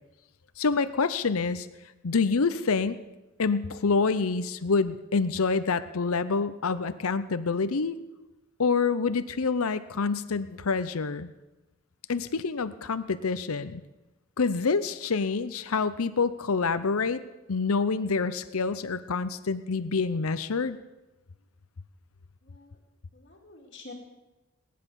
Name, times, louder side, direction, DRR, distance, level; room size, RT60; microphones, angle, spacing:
voice 1, 0.6-1.7 2.0-3.0 3.4-8.0 8.6-11.3 12.1-13.8 14.4-17.2 17.5-20.8, left 4 dB, 75° left, 13 dB, 0.7 m, -27 dB
voice 2, 22.4-22.8 23.1-23.9, left 3 dB, 45° left, -4 dB, 2.4 m, -48 dB
19.5 x 10.5 x 7.0 m, 1.0 s
head